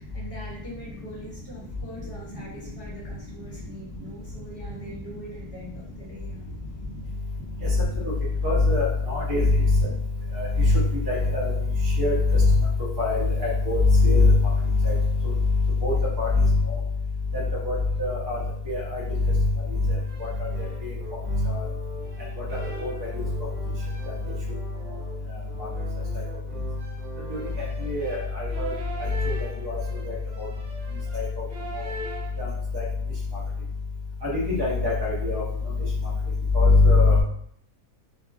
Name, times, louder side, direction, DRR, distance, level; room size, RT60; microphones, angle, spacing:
voice 1, 0.0-6.5, equal, 40° left, -7 dB, 0.5 m, -42 dB
voice 2, 8.4-9.8 10.4-11.5 12.0-12.5 13.0-14.3 14.8-14.9 15.8-16.8 17.6-18.4 18.7-19.0 20.8-20.9 21.4-21.6 22.8-23.2 27.3-27.4 27.8-28.7 29.3-29.4 29.6-29.8 30.1-30.5 31.1-31.3 32.4-32.5 32.7-32.8 34.3-35.4 36.5-37.2, left 3 dB, 30° right, -6 dB, 0.4 m, -21 dB
sound 1, 19.9-32.5, right 1 dB, 55° right, 0.9 m, -41 dB
2.8 x 2.5 x 2.4 m, 0.66 s
omnidirectional pair, 1.6 m